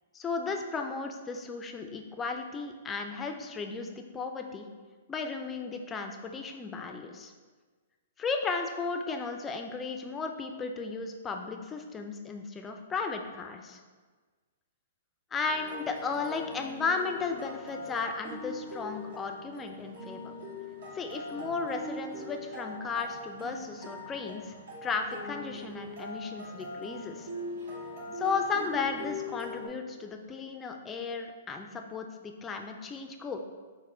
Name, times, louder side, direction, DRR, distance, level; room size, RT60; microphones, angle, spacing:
voice 1, 0.1-4.7 5.1-7.3 8.2-13.8 15.3-20.3 20.9-24.5 24.8-27.3 28.2-33.4, left 4 dB, 20° left, 4 dB, 0.4 m, -35 dB
sound 1, 15.4-29.7, left 1 dB, 75° right, 1.5 m, -42 dB
4.2 x 2.1 x 4.2 m, 1.4 s
hypercardioid pair, 125°, 0 cm